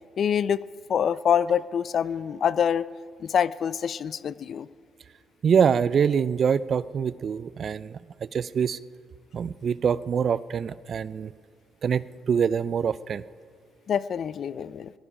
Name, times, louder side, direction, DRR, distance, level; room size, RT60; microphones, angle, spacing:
voice 1, 0.2-0.6 0.9-2.9 3.2-4.7 13.9-14.9, left 8 dB, 60° left, 17 dB, 0.4 m, -25 dB
voice 2, 5.4-8.8 9.3-11.3 11.8-13.2, right 7 dB, 55° right, 18 dB, 0.4 m, -25 dB
18.0 x 12.5 x 5.0 m, 2.1 s
cardioid pair, 90°, 0 cm